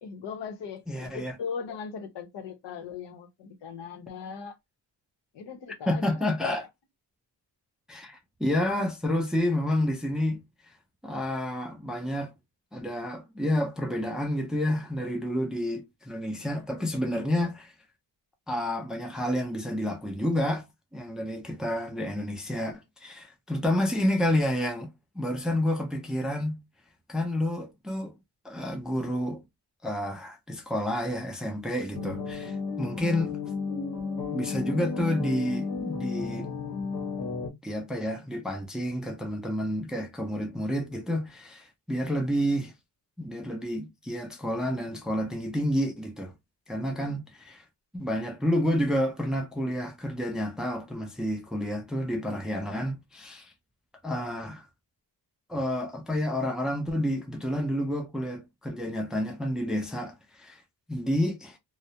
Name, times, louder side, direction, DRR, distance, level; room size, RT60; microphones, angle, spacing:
voice 1, 0.0-4.6 5.3-6.3 47.0-47.2, left 6 dB, 85° left, 0.7 m, -39 dB
voice 2, 0.9-1.3 5.9-6.7 7.9-10.4 11.0-12.3 12.7-17.7 18.5-20.7 20.9-26.6 27.1-28.1 28.4-29.4 29.8-33.4 34.3-36.5 37.6-42.7 43.2-46.3 46.7-47.6 47.9-53.5 54.0-54.7 55.5-60.6 60.9-61.6, left 1 dB, ahead, 0.3 m, -29 dB
sound 1, 31.9-37.5, left 4 dB, 60° left, 0.8 m, -33 dB
2.2 x 2.0 x 2.7 m
wide cardioid pair, 130°, 42 cm